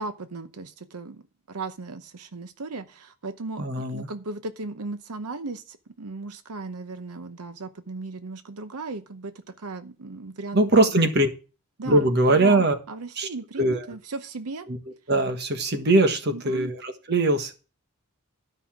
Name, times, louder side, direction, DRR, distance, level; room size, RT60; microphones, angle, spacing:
voice 1, 0.0-11.1 11.8-14.7 16.3-16.7, right 3 dB, 90° right, 10 dB, 0.8 m, -36 dB
voice 2, 3.6-4.1 10.5-11.3 11.9-12.8 13.2-13.3 13.6-13.8 14.7-14.8 15.1-17.5, right 2 dB, 45° right, 7 dB, 1.4 m, -21 dB
12.5 x 5.6 x 6.1 m, 0.34 s
head